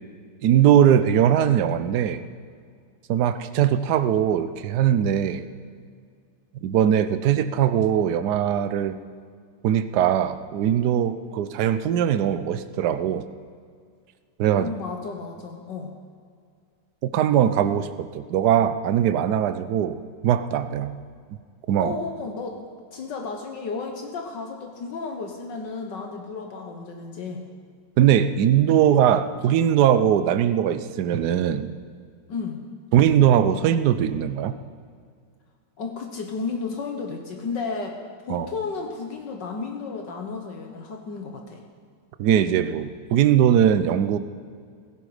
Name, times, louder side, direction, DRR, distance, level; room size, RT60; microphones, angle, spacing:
voice 1, 0.4-2.2 3.1-5.4 6.6-9.0 9.6-13.2 14.4-14.7 17.0-20.9 21.7-21.9 28.0-31.7 32.9-34.5 38.3-38.5 42.2-44.2, right 10 dB, 65° right, 12 dB, 1.2 m, -20 dB
voice 2, 14.5-15.9 21.8-22.6 22.9-27.4 32.3-32.6 35.8-38.0 38.2-41.6, left 4 dB, 70° left, 2 dB, 1.9 m, -33 dB
16.5 x 16.0 x 5.0 m, 2.1 s
omnidirectional pair, 2.0 m